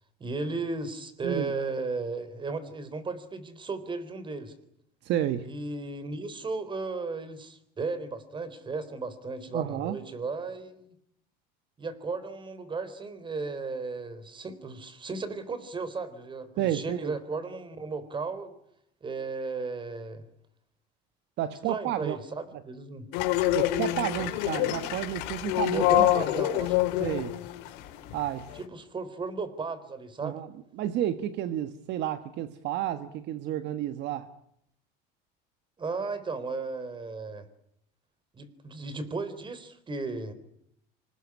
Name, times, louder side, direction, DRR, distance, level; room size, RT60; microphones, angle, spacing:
voice 1, 0.2-4.5 5.4-10.9 11.8-18.5 19.0-20.2 21.7-23.1 25.7-26.7 28.5-30.4 35.8-37.5 38.3-40.3, right 3 dB, 25° right, 14 dB, 3.9 m, -35 dB
voice 2, 5.0-5.5 9.5-10.0 16.6-17.1 21.4-22.2 23.5-26.1 27.0-27.4 28.1-28.5 30.2-30.5 30.8-34.3, right 11 dB, 60° right, 11 dB, 1.5 m, -31 dB
sound 1, 23.1-28.6, left 14 dB, 80° left, 4.8 m, -27 dB
26.0 x 20.0 x 9.8 m, 0.75 s
cardioid pair, 125°, 21 cm